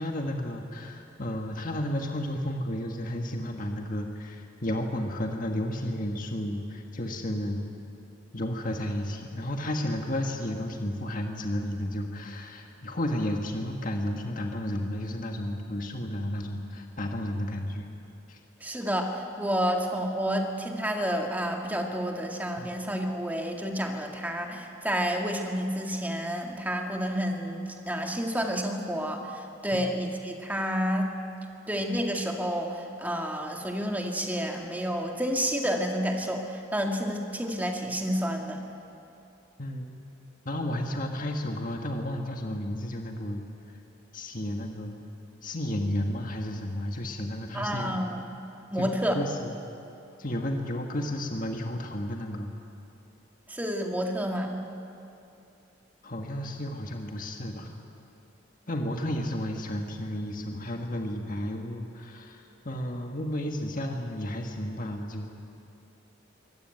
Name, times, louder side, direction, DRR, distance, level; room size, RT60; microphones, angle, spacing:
voice 1, 0.0-7.6 8.3-17.9 18.3-18.4 22.6-22.7 29.7-29.8 39.6-39.9 40.4-43.4 44.1-45.0 45.4-48.0 48.8-49.5 50.2-52.5 56.0-57.8 58.7-65.3, left 1 dB, 45° left, 2 dB, 1.7 m, -32 dB
voice 2, 18.6-31.1 31.7-38.7 47.5-48.2 48.7-49.2 53.5-54.6, equal, 10° right, 2 dB, 2.0 m, -30 dB
24.0 x 17.5 x 9.2 m, 2.8 s
head